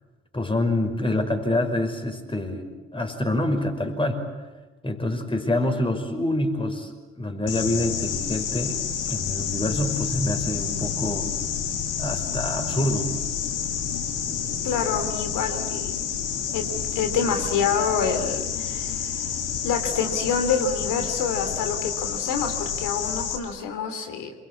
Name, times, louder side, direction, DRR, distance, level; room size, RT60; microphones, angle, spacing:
voice 1, 0.3-2.7 2.9-4.2 4.8-8.8 9.1-11.3 12.0-13.1, left 1 dB, 15° left, 6 dB, 5.7 m, -26 dB
sound 1, 7.5-23.4, left 8 dB, 80° left, 2.7 m, -29 dB
voice 2, 14.6-16.0 16.5-16.7 16.9-19.4 19.6-24.3, left 6 dB, 60° left, 6 dB, 3.2 m, -27 dB
28.0 x 24.0 x 8.6 m, 1.2 s
figure-of-eight pair, 50°, 34 cm